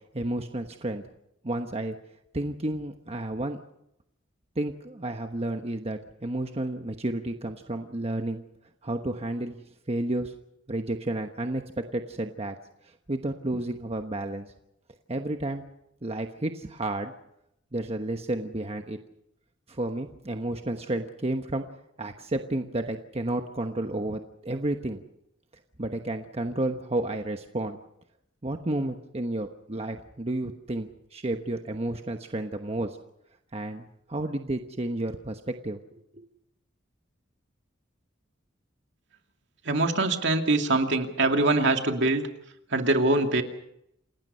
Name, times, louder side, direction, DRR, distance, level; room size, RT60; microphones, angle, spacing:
voice 1, 0.1-1.0 1.4-2.0 2.3-3.6 4.6-8.4 8.8-9.6 9.9-10.3 10.7-11.6 11.9-12.6 13.1-14.5 15.1-15.7 16.0-17.1 17.7-19.0 19.7-21.6 22.0-25.0 25.8-27.8 28.4-33.0 33.5-36.2, right 1 dB, 30° right, 5 dB, 1.1 m, -31 dB
voice 2, 39.7-42.3 42.7-43.4, right 2 dB, 65° right, 4 dB, 2.5 m, -23 dB
28.0 x 19.0 x 5.6 m, 0.79 s
head